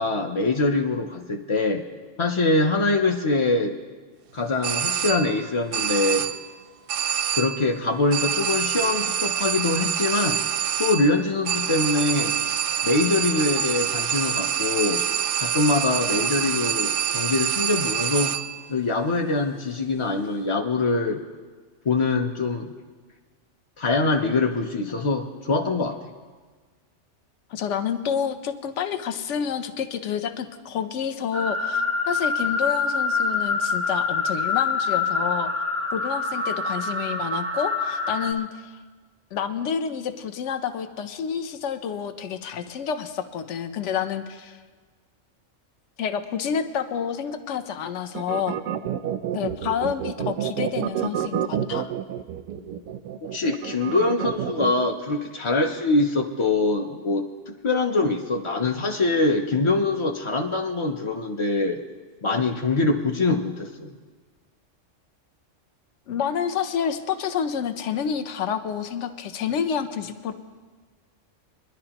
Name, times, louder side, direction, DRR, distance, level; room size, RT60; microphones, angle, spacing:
voice 1, 0.0-1.8 2.2-3.7 4.3-6.3 7.3-10.4 10.8-12.4 12.8-15.0 15.4-18.3 18.7-21.2 21.9-22.7 23.8-26.0 49.3-49.5 52.6-52.7 53.3-57.2 57.6-61.8 62.2-63.9, left 3 dB, 40° left, 1 dB, 0.4 m, -24 dB
sound 1, 4.6-5.4 5.7-6.5 6.9-7.7 8.1-18.6, right 9 dB, 60° right, 0.6 m, -26 dB
voice 2, 27.5-35.5 35.9-38.8 39.3-44.6 46.0-48.6 49.3-51.9 66.1-70.3, left 7 dB, 70° left, 9 dB, 1.0 m, -29 dB
sound 2, 31.3-38.3, left 4 dB, 15° right, 0.6 m, -25 dB
sound 3, 48.1-54.9, right 9 dB, 90° right, 1.0 m, -29 dB
23.0 x 11.0 x 2.9 m, 1.4 s
omnidirectional pair, 1.3 m